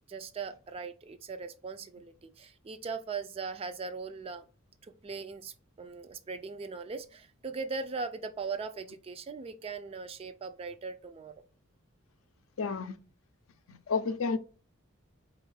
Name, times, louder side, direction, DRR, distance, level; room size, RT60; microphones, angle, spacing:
voice 1, 0.1-4.5 4.8-11.3, right 4 dB, 30° right, 0.3 m, -39 dB
voice 2, 12.6-13.0 13.7-14.4, left 4 dB, 75° left, 0.5 m, -31 dB
4.4 x 2.4 x 3.2 m
head